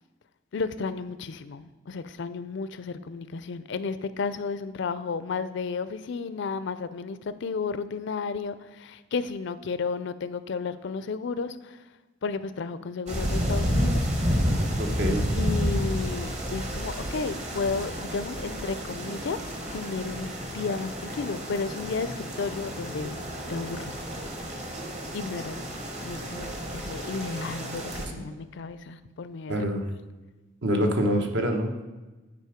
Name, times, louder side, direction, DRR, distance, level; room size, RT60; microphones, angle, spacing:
voice 1, 0.5-11.8 12.2-14.3 15.4-23.2 23.5-24.0 25.1-25.7 26.0-29.7, left 4 dB, 65° left, 13 dB, 0.4 m, -33 dB
sound 1, 13.1-28.1, equal, 35° right, 1.3 m, -30 dB
voice 2, 14.8-15.3 29.5-29.9 30.6-31.8, equal, 60° right, 3 dB, 1.1 m, -26 dB
9.3 x 5.1 x 5.0 m, 1.2 s
head